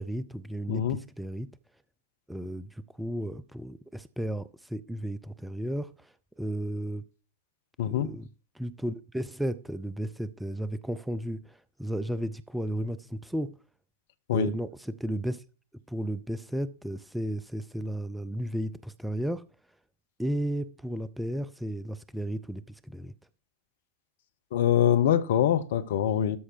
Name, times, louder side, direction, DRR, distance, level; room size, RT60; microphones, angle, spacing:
voice 1, 0.0-1.5 2.3-7.0 7.8-8.3 8.5-13.5 14.3-15.4 15.9-19.5 20.2-23.1, right 1 dB, 5° right, 0.5 m, -34 dB
voice 2, 0.7-1.0 7.8-8.1 14.3-14.5 24.5-26.4, left 10 dB, 55° left, 0.8 m, -24 dB
13.0 x 5.6 x 4.6 m
figure-of-eight pair, 90°, 0 cm